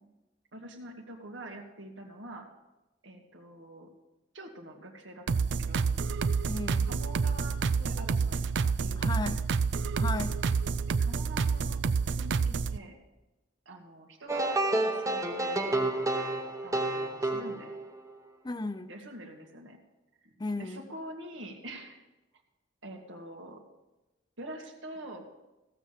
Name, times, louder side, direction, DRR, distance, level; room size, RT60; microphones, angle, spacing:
voice 1, 0.5-2.5 3.0-3.9 4.3-5.9 6.9-9.3 10.9-13.0 13.7-15.6 16.6-17.7 18.9-19.8 20.2-20.3 20.6-22.0 22.8-23.6 24.4-25.2, right 1 dB, 85° right, 2 dB, 2.1 m, -45 dB
sound 1, 5.3-12.8, right 5 dB, 65° right, 0.4 m, -28 dB
voice 2, 6.4-6.9 9.0-9.4 9.9-10.4 18.4-18.9 20.4-20.9, left 3 dB, 20° left, 11 dB, 0.5 m, -35 dB
sound 2, 14.3-18.1, right 2 dB, 15° right, 0.9 m, -30 dB
16.0 x 7.2 x 5.8 m, 1.0 s
head